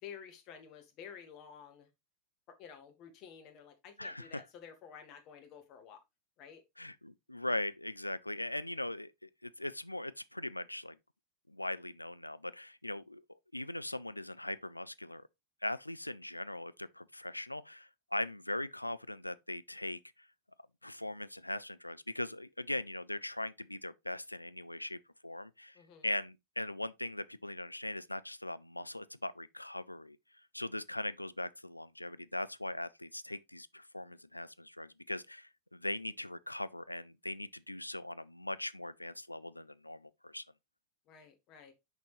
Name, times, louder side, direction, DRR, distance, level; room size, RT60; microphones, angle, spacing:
voice 1, 0.0-1.9 2.5-6.0 6.4-6.6 25.7-26.1 41.1-41.7, left 7 dB, 40° left, 1.6 m, -51 dB
voice 2, 4.0-4.4 6.8-11.0 11.5-13.2 13.5-15.3 15.6-20.3 20.8-25.8 26.0-30.2 30.5-40.4, left 1 dB, 85° left, 0.3 m, -40 dB
6.3 x 5.3 x 3.1 m
figure-of-eight pair, 90°, 0 cm